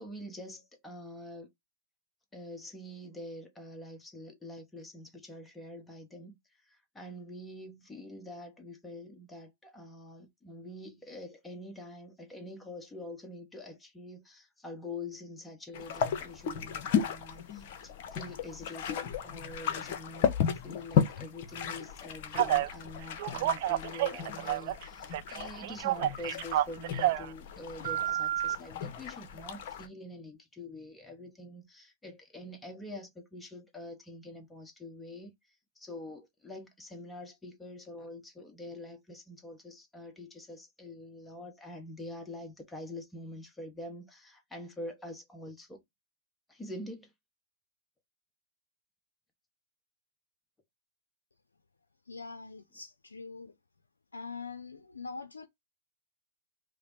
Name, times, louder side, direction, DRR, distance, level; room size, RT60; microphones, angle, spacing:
voice 1, 0.0-1.5 2.3-45.8 46.5-47.1, left 1 dB, 10° left, 0.9 m, -45 dB
sound 1, 15.7-29.9, left 7 dB, 55° left, 0.7 m, -34 dB
Telephone, 22.3-22.7 23.2-24.8 25.1-27.3 27.8-28.5, right 13 dB, 55° right, 0.3 m, -29 dB
voice 2, 52.1-53.5 54.1-55.5, left 4 dB, 90° left, 0.4 m, -43 dB
4.9 x 2.0 x 2.9 m
hypercardioid pair, 110°, 0 cm